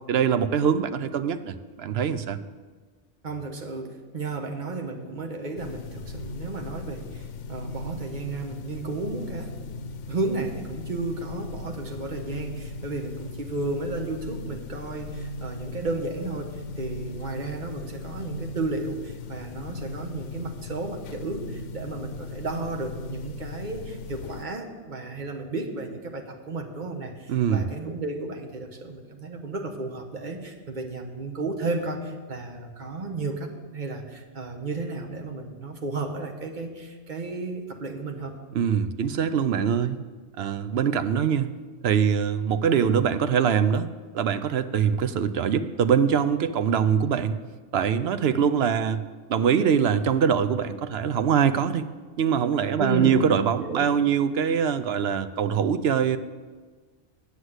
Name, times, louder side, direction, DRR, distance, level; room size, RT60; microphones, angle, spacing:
voice 1, 0.1-2.4 27.3-27.7 38.5-40.0 40.4-41.5 41.8-43.9 44.1-47.4 47.7-49.0 49.3-51.9 52.2-56.2, right 7 dB, 65° right, 11 dB, 0.8 m, -23 dB
voice 2, 3.2-9.7 10.1-38.4 52.8-53.9, right 3 dB, 40° right, 3 dB, 1.3 m, -33 dB
sound 1, 5.6-24.5, left 3 dB, 85° left, 0.9 m, -38 dB
9.8 x 8.0 x 7.9 m, 1.4 s
omnidirectional pair, 1.2 m